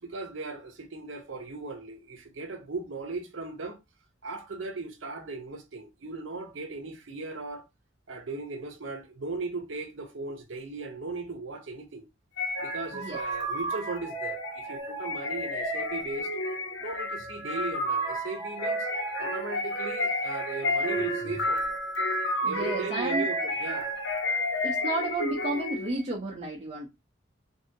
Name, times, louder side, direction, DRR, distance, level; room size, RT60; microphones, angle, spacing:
voice 1, 0.0-3.8 4.2-7.7 8.1-12.0 12.6-16.3 16.8-18.9 19.2-21.8 22.4-24.0, right 3 dB, 80° right, 0.7 m, -37 dB
sound 1, 12.4-26.0, equal, 80° left, 0.8 m, -31 dB
voice 2, 22.4-23.2 24.6-26.9, right 2 dB, 35° right, 0.6 m, -32 dB
2.7 x 2.6 x 2.6 m
head